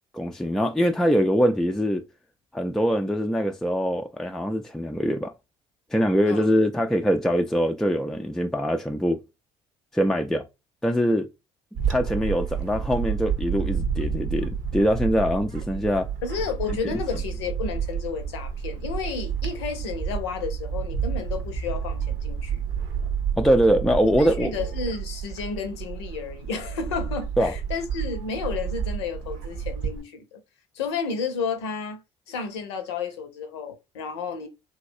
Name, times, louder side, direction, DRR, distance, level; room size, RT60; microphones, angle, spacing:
voice 1, 0.1-2.0 2.5-5.3 5.9-9.2 9.9-10.4 10.8-11.3 11.9-16.1 16.7-16.8 23.4-24.5 27.4-27.5, equal, 5° left, 0.4 m, -23 dB
Bird / Wind, 11.8-30.0, right 7 dB, 70° right, 0.7 m, -30 dB
voice 2, 16.2-22.6 24.2-30.4 30.7-34.5, left 5 dB, 85° left, 0.7 m, -32 dB
3.1 x 2.7 x 2.6 m
hypercardioid pair, 65°, 14 cm